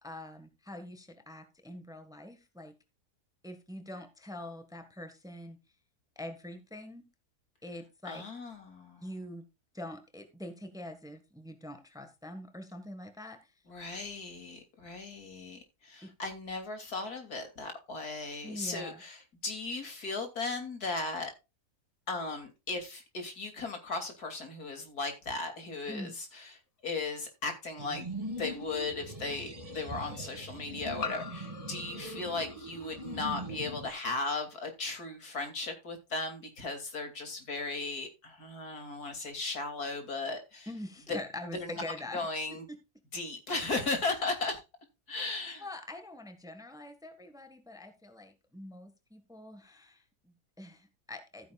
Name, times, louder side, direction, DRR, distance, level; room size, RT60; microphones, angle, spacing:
voice 1, 0.0-2.8 3.4-5.6 6.1-7.1 7.6-8.3 9.0-9.4 9.7-13.5 16.0-16.1 18.4-19.0 25.9-26.2 40.7-42.8 45.6-51.5, left 1 dB, ahead, 1.4 m, -44 dB
voice 2, 8.0-9.0 13.7-21.3 22.1-26.5 26.8-28.1 28.4-40.7 41.1-41.2 41.5-41.8 42.1-42.6 43.1-44.6 45.1-45.7, left 3 dB, 80° left, 3.3 m, -36 dB
sound 1, 27.1-27.2 28.8-28.9 31.0-33.5, left 5 dB, 50° left, 0.4 m, -43 dB
sound 2, 27.8-33.9, right 1 dB, 20° right, 3.1 m, -41 dB
14.5 x 9.3 x 2.4 m
omnidirectional pair, 1.6 m